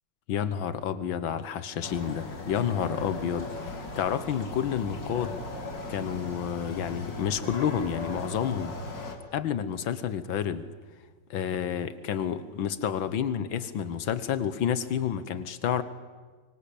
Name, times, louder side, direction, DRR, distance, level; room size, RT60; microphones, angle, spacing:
voice 1, 0.3-5.4 5.9-8.7 9.3-10.6 11.3-15.8, left 8 dB, 85° left, 14 dB, 1.9 m, -30 dB
sound 1, 1.8-9.2, left 2 dB, 65° left, 3.3 m, -38 dB
24.5 x 24.0 x 8.6 m, 1.4 s
omnidirectional pair, 2.1 m